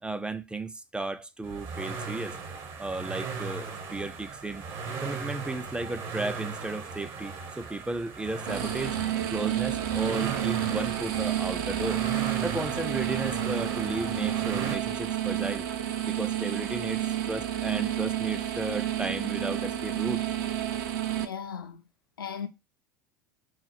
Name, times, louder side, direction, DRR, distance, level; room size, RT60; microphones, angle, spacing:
voice 1, 0.0-2.4 2.8-4.6 5.0-9.0 9.3-12.0 12.4-15.7 16.1-20.2, right 2 dB, 10° right, 0.3 m, -34 dB
sound 1, 1.4-14.8, right 5 dB, 55° right, 0.8 m, -37 dB
sound 2, 8.5-21.3, right 11 dB, 70° right, 0.5 m, -30 dB
voice 2, 21.2-21.8 22.2-22.5, left 7 dB, 90° left, 0.4 m, -36 dB
3.1 x 2.0 x 3.9 m
hypercardioid pair, 75°, 11 cm